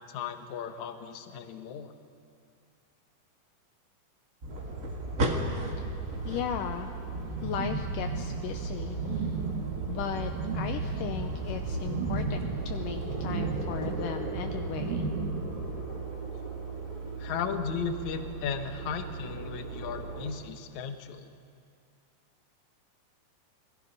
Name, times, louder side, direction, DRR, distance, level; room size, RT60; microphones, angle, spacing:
voice 1, 0.0-1.9 17.2-21.3, left 6 dB, 60° left, 7 dB, 2.2 m, -36 dB
sound 1, 4.4-14.0, right 1 dB, 55° right, 0.9 m, -37 dB
sound 2, 4.5-20.3, right 5 dB, 10° right, 3.1 m, -38 dB
voice 2, 6.3-6.9 7.4-9.3 9.9-15.1, left 9 dB, 75° left, 6 dB, 2.1 m, -37 dB
sound 3, 7.1-15.7, right 4 dB, 75° right, 3.4 m, -35 dB
28.5 x 21.5 x 5.5 m, 2.3 s
omnidirectional pair, 4.4 m